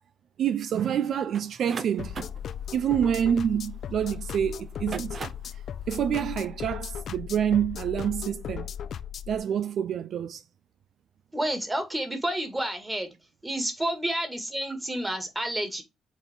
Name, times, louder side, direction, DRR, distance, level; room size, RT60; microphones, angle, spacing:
voice 1, 0.4-2.2 2.7-5.2 5.9-8.7 9.3-10.4, right 9 dB, 65° right, 0.4 m, -27 dB
sound 1, 1.3-4.1 4.7-5.6, right 5 dB, 45° right, 0.8 m, -40 dB
sound 2, 2.0-9.4, left 9 dB, 65° left, 0.6 m, -37 dB
voice 2, 11.3-13.1 13.4-15.8, right 1 dB, 15° right, 2.1 m, -30 dB
7.2 x 4.0 x 3.6 m
cardioid pair, 90°, 0 cm